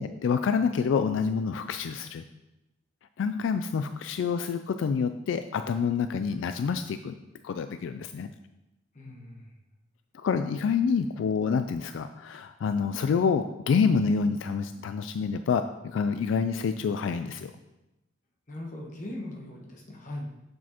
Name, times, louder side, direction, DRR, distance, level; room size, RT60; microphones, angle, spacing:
voice 1, 0.0-2.2 3.2-7.2 7.4-8.3 10.1-17.5, left 5 dB, 85° left, 9 dB, 0.3 m, -27 dB
voice 2, 8.9-9.5 18.5-20.3, left 1 dB, 40° left, 0 dB, 1.1 m, -39 dB
7.1 x 6.2 x 2.9 m, 0.97 s
head